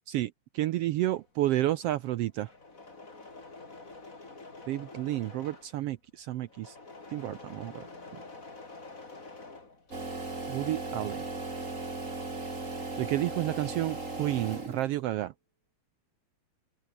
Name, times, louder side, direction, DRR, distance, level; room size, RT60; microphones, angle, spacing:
voice 1, 0.1-2.5 4.7-6.8 7.1-7.8 10.5-11.2 12.8-15.3, right 14 dB, 80° right, 1.4 m, -31 dB
Engine / Mechanisms, 0.7-10.4 10.7-13.1 13.3-14.0, left 3 dB, 25° left, 4.0 m, -49 dB
sound 1, 9.9-15.1, right 3 dB, 25° right, 4.2 m, -37 dB
open air
omnidirectional pair, 3.3 m